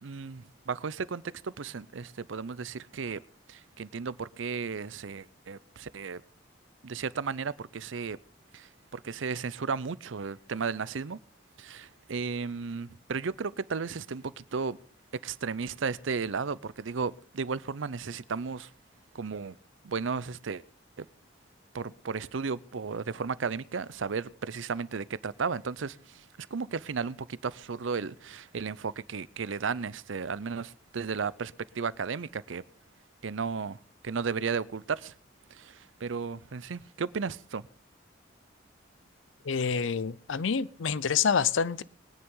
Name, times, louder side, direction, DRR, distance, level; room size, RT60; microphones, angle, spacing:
voice 1, 0.0-3.2 3.5-6.2 6.8-8.2 8.5-11.2 11.6-14.8 15.2-18.7 19.1-19.6 19.8-20.6 21.0-21.1 21.7-32.6 33.2-35.1 35.5-37.6, right 5 dB, 80° right, 0.6 m, -34 dB
voice 2, 39.4-41.8, left 6 dB, 80° left, 0.6 m, -27 dB
21.5 x 9.7 x 3.8 m
head